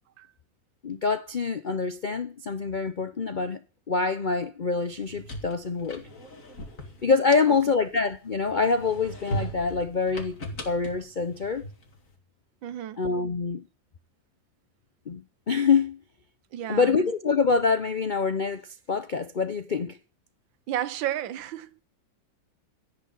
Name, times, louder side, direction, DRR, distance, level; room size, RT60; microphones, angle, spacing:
voice 1, 0.8-3.6 3.9-6.0 7.0-10.3 10.7-11.6 13.0-13.6 15.1-16.0 16.7-20.0, left 5 dB, 80° left, 0.4 m, -25 dB
sound 1, 4.9-8.1 8.6-12.0, equal, 45° left, 2.9 m, -38 dB
voice 2, 12.6-13.0 16.5-16.9 20.7-21.8, right 11 dB, 80° right, 1.6 m, -32 dB
17.0 x 6.1 x 9.3 m
omnidirectional pair, 2.0 m